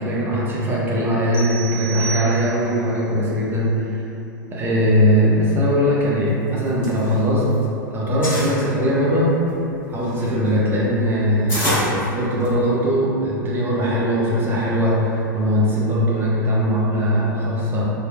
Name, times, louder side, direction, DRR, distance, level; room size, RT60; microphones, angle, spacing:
voice 1, 0.0-4.0 4.5-7.4 7.9-9.3 9.9-17.8, equal, 20° right, -6 dB, 0.6 m, -20 dB
sound 1, 1.3-2.9, right 6 dB, 70° left, 0.7 m, -32 dB
sound 2, 6.5-7.6 7.9-8.6 9.2-12.7, left 1 dB, 20° left, 1.3 m, -27 dB
2.8 x 2.3 x 2.3 m, 2.8 s
figure-of-eight pair, 90°, 11 cm